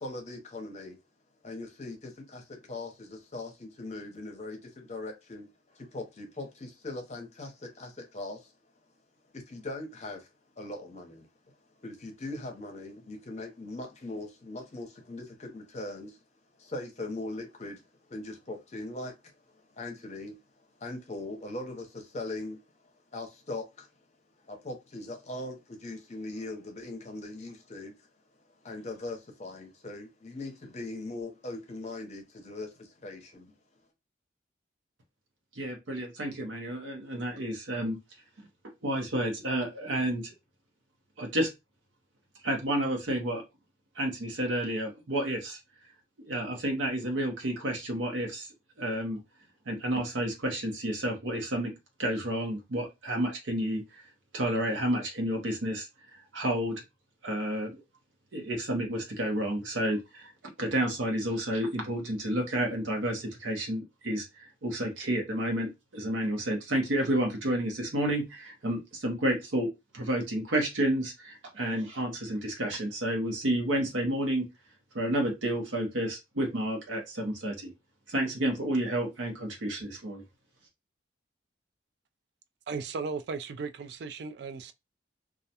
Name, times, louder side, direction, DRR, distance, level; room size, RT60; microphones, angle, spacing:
voice 1, 0.0-1.0 1.4-5.5 5.9-8.4 9.5-10.2 10.6-11.2 11.8-16.1 16.7-17.8 18.1-19.1 19.8-20.3 20.8-22.6 23.1-23.7 24.5-27.9 28.6-32.7 33.0-33.5, left 2 dB, 35° left, 0.6 m, -40 dB
voice 2, 35.6-38.0 38.8-40.3 41.2-41.5 42.4-43.4 44.0-45.6 46.2-48.5 48.8-49.2 49.7-51.7 52.0-53.8 54.3-56.8 57.2-57.8 58.3-60.3 60.6-69.7 69.9-74.5 74.9-77.7 78.1-80.2, right 1 dB, 80° right, 0.7 m, -30 dB
voice 3, 82.7-84.7, right 4 dB, 60° right, 0.3 m, -36 dB
2.3 x 2.1 x 2.7 m
head